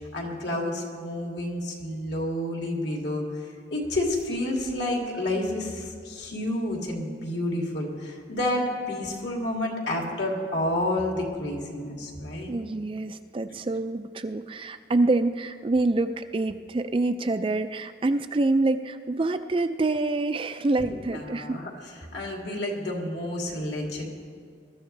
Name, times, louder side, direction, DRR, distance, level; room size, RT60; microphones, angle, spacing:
voice 1, 0.1-3.2 3.7-12.5 20.8-21.7 22.1-24.0, left 1 dB, 65° left, -1 dB, 2.6 m, -30 dB
voice 2, 12.5-21.6, right 2 dB, 30° right, 9 dB, 0.4 m, -26 dB
21.5 x 13.5 x 3.3 m, 2.3 s
head